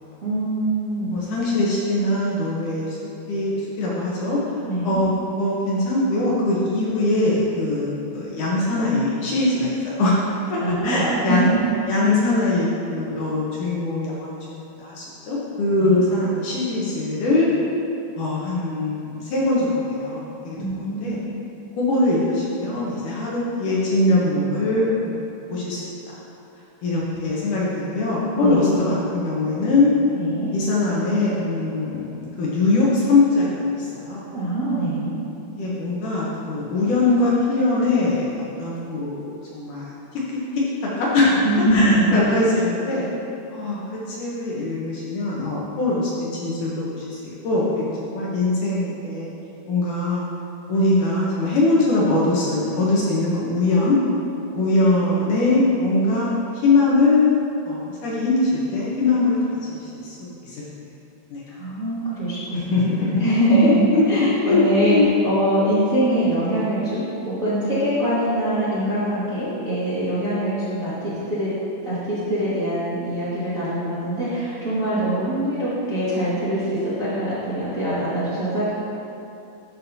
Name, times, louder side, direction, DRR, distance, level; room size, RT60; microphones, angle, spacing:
voice 1, 0.2-1.1 4.6-5.0 10.6-11.6 15.8-16.1 20.6-21.3 26.9-27.4 28.3-28.8 30.1-30.5 34.3-35.1 41.4-42.2 61.5-62.7 63.2-71.5 71.8-78.7, right 1 dB, 40° right, -13 dB, 1.1 m, -23 dB
voice 2, 1.1-3.0 3.3-4.4 4.8-5.1 5.4-10.2 10.5-11.5 11.9-17.5 18.2-21.2 21.8-25.8 26.8-29.9 30.5-34.3 35.5-39.9 40.5-40.6 41.0-41.4 41.7-43.1 43.5-49.3 49.7-50.3 50.7-54.0 54.5-56.3 56.6-57.4 57.7-60.6 61.3-61.4 62.5-63.2 63.6-65.1, left 2 dB, 65° left, -6 dB, 2.2 m, -22 dB
12.5 x 6.1 x 2.8 m, 2.8 s
omnidirectional pair, 4.4 m